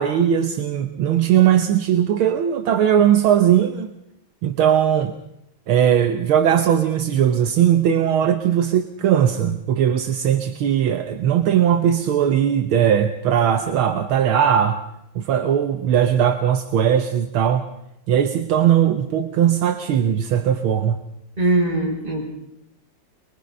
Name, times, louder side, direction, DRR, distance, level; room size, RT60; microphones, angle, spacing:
voice 1, 0.0-3.9 4.4-5.1 5.7-14.8 15.1-17.6 18.1-21.0, right 9 dB, 75° right, 7 dB, 1.8 m, -19 dB
voice 2, 21.4-22.2, right 2 dB, 25° right, -3 dB, 6.8 m, -20 dB
23.5 x 22.0 x 5.3 m, 0.82 s
omnidirectional pair, 2.3 m